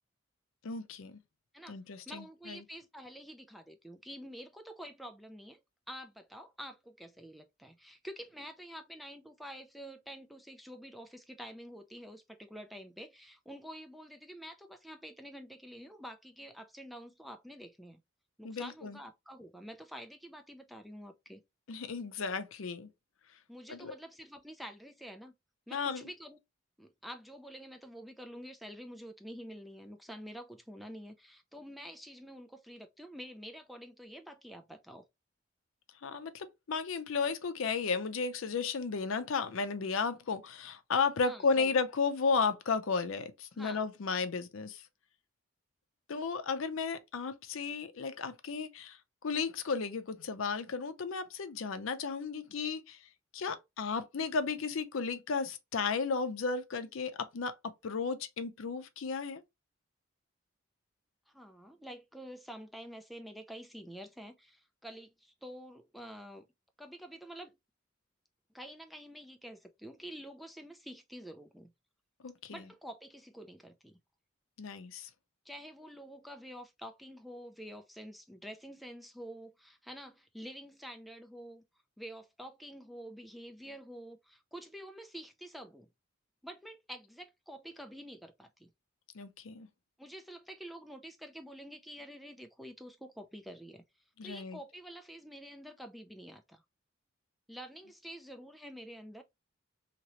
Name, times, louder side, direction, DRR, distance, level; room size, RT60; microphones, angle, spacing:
voice 1, 0.6-1.2 1.7-2.6 18.4-19.0 21.7-22.9 23.7-24.0 25.7-26.0 36.0-44.8 46.1-59.4 72.2-72.7 74.6-75.1 89.1-89.7 94.2-94.6, left 5 dB, 70° left, 0.5 m, -34 dB
voice 2, 2.1-5.6 5.9-18.0 18.4-21.4 23.5-25.3 25.7-26.4 26.8-35.1 41.2-41.7 43.5-43.8 61.3-66.5 66.8-67.6 68.5-71.7 72.5-74.0 75.5-81.6 82.0-85.9 86.4-88.7 90.0-93.8 94.2-96.6 97.5-99.2, equal, ahead, 0.3 m, -48 dB
3.0 x 2.8 x 2.8 m
head